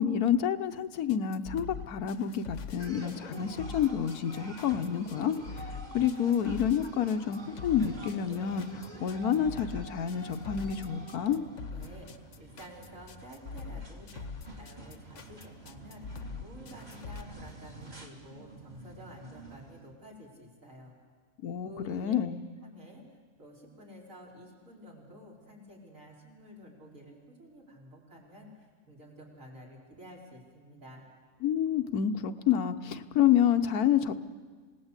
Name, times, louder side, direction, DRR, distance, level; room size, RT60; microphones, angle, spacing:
voice 1, 0.0-11.4 21.4-22.4 31.4-34.1, left 9 dB, 80° left, 9 dB, 1.4 m, -28 dB
sound 1, 1.1-17.2, left 5 dB, 55° left, 1.3 m, -43 dB
sound 2, 2.8-19.9, right 2 dB, 30° right, 2.4 m, -48 dB
voice 2, 11.7-12.1 12.4-14.3 14.6-20.9 21.6-22.2 22.6-23.0 23.4-31.1, equal, 60° right, -3 dB, 5.0 m, -51 dB
27.5 x 18.0 x 8.2 m, 1.5 s
omnidirectional pair, 1.6 m